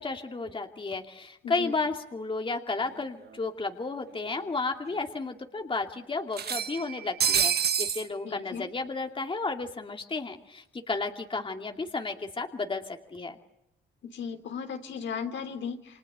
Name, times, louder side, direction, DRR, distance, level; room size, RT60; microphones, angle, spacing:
voice 1, 0.0-13.4, left 3 dB, 25° left, 4 dB, 2.5 m, -33 dB
voice 2, 1.4-1.8 8.2-8.7 14.0-16.0, left 6 dB, 65° left, 5 dB, 3.6 m, -36 dB
sound 1, 2.9-3.0 3.3-3.4 4.5-4.6 4.9-5.0 6.3-8.1, right 8 dB, 55° right, 1.3 m, -27 dB
29.5 x 25.5 x 6.9 m, 0.84 s
cardioid pair, 90°, 20 cm